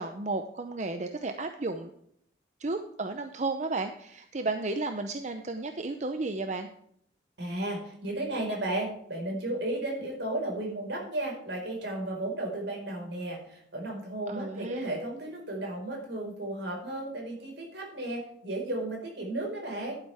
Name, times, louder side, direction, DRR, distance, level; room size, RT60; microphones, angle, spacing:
voice 1, 0.0-1.9 2.6-6.7 14.3-14.9, right 3 dB, 40° right, 7 dB, 0.7 m, -33 dB
voice 2, 7.4-20.0, right 1 dB, 75° right, 0 dB, 4.9 m, -34 dB
11.5 x 10.0 x 3.5 m, 0.68 s
head